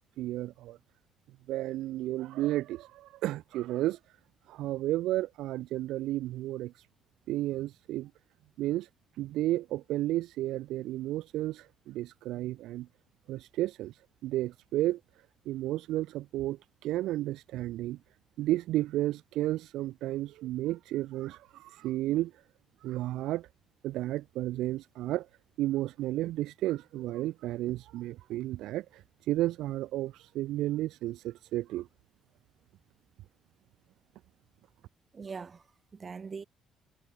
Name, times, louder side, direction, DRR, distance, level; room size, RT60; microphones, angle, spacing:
voice 1, 0.2-0.8 1.5-4.0 4.5-6.9 7.3-8.1 8.6-8.9 9.2-12.9 13.3-15.0 15.5-18.0 18.4-22.3 22.8-23.5 23.8-25.3 25.6-31.9, right 15 dB, 85° right, 0.5 m, -32 dB
voice 2, 35.1-36.4, right 5 dB, 30° right, 3.6 m, -42 dB
cardioid pair, 125°, 0 cm